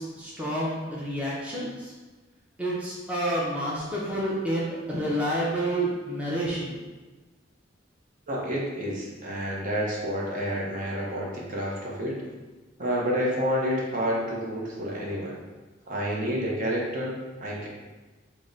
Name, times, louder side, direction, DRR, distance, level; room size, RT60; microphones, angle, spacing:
voice 1, 0.0-1.9 2.6-6.7, right 1 dB, 5° right, -6 dB, 0.5 m, -29 dB
voice 2, 8.3-12.2 12.8-15.4 15.9-17.7, equal, 45° right, -4 dB, 0.7 m, -29 dB
3.6 x 2.1 x 3.8 m, 1.3 s
head